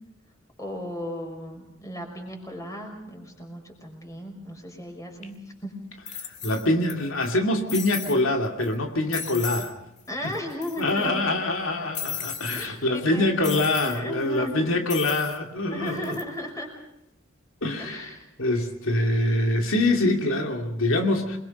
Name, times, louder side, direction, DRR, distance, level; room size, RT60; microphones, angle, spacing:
voice 1, 0.6-5.7 10.1-11.2 12.5-13.6 13.8-14.7 15.7-16.7 17.8-18.3, left 1 dB, 15° left, 2 dB, 5.7 m, -36 dB
sound 1, 5.2-5.3 6.1-6.9 7.2-7.3 7.7-8.2 8.6-8.8 9.1-9.7 10.0-10.1 10.3-11.0 11.9-12.7 13.4-14.0 14.9-15.4 15.9-16.2, left 8 dB, 35° left, 2.1 m, -35 dB
voice 2, 6.2-9.7 10.2-10.3 10.8-16.2 17.6-21.4, left 2 dB, 85° left, 3 dB, 2.5 m, -25 dB
28.0 x 22.0 x 5.4 m, 0.81 s
head